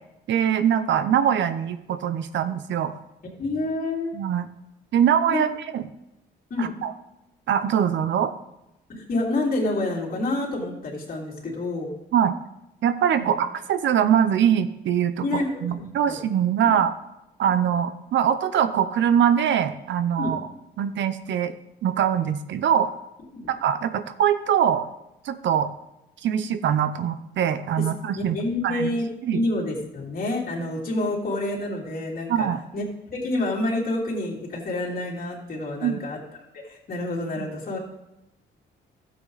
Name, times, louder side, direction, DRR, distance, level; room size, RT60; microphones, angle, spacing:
voice 1, 0.3-2.9 4.1-4.5 4.9-5.5 5.7-5.8 6.6-6.9 7.5-8.3 12.1-12.3 12.8-15.2 15.6-16.9 17.4-20.4 20.8-21.5 21.8-22.9 23.5-24.9 25.2-25.7 26.2-28.4 28.6-28.9 29.2-29.4 32.3-32.6 35.8-36.0 37.4-37.5, right 9 dB, 70° right, 11 dB, 0.7 m, -22 dB
voice 2, 3.4-4.2 5.3-5.4 6.5-6.7 8.9-11.9 13.2-13.3 15.2-16.2 16.6-16.8 17.4-17.5 20.2-20.3 23.3-23.5 27.8-27.9 28.1-29.1 29.3-32.8 33.1-36.2 36.6-37.8, left 2 dB, 45° left, -3 dB, 3.2 m, -28 dB
13.0 x 7.8 x 4.0 m, 0.91 s
cardioid pair, 90°, 20 cm